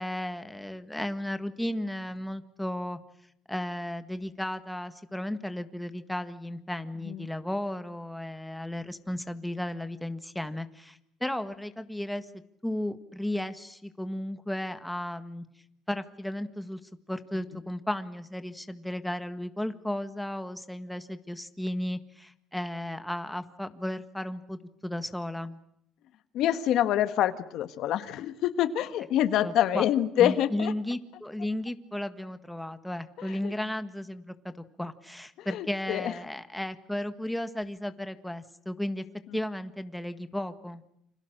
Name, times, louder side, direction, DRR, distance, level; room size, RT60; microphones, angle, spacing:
voice 1, 0.0-3.0 3.5-12.3 12.6-15.4 15.9-16.8 17.1-25.6 29.4-29.8 30.2-34.5 34.8-39.0 39.3-40.8, left 1 dB, 5° left, 9 dB, 1.7 m, -34 dB
voice 2, 26.3-30.7 33.2-33.5 35.4-36.1, left 11 dB, 70° left, 11 dB, 1.6 m, -26 dB
29.0 x 26.5 x 6.6 m, 0.74 s
cardioid pair, 120°, 0 cm